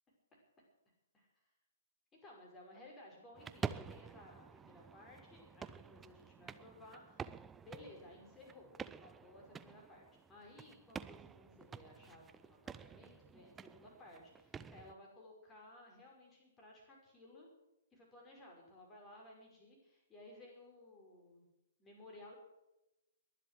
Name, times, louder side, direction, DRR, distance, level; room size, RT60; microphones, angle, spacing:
voice 1, 2.1-7.2 7.6-8.7 9.0-17.5 17.9-21.5 21.8-22.3, left 1 dB, 15° left, -2 dB, 5.8 m, -58 dB
sound 1, 3.4-14.9, right 6 dB, 10° right, 0.5 m, -49 dB
22.0 x 7.7 x 7.8 m, 0.93 s
figure-of-eight pair, 120°, 0 cm